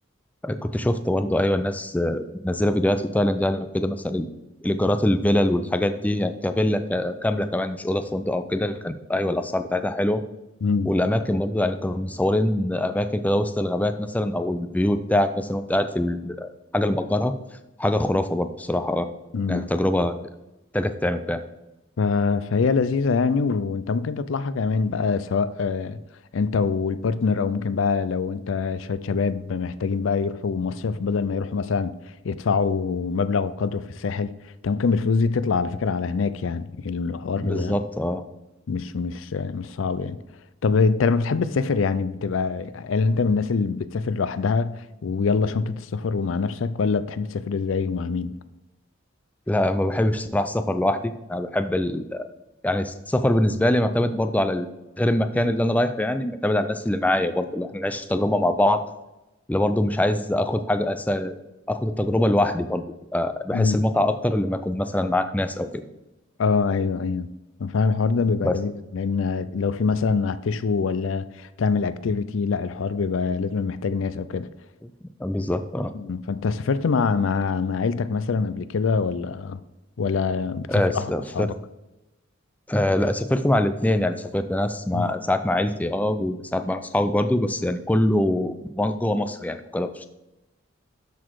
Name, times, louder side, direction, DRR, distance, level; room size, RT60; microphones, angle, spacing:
voice 1, 0.4-4.3 4.6-10.2 10.9-17.3 17.8-19.1 19.5-20.2 20.7-21.4 37.4-38.2 49.5-52.3 52.6-54.7 55.0-58.8 59.5-61.3 61.7-62.8 63.1-65.8 68.4-68.5 75.2-75.9 80.7-81.5 82.7-90.1, left 1 dB, 10° left, 0.4 m, -23 dB
voice 2, 19.3-19.7 22.0-26.0 26.3-31.9 32.2-34.3 34.6-37.8 38.7-40.2 40.6-48.3 63.5-63.8 66.4-67.3 67.6-74.5 75.9-79.6 80.0-81.5 84.9-85.1, left 4 dB, 80° left, 0.4 m, -24 dB
12.0 x 4.2 x 4.6 m
head